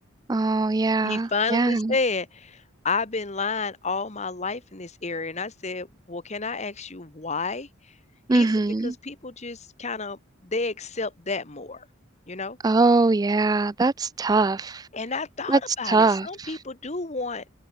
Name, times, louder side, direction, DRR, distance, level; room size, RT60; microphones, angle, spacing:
voice 1, 0.3-1.9 8.3-8.9 12.6-14.9 15.5-16.6, right 3 dB, 20° right, 0.3 m, -22 dB
voice 2, 1.0-7.9 8.3-8.5 8.8-11.8 12.3-12.6 14.9-17.6, left 4 dB, 35° left, 1.5 m, -31 dB
head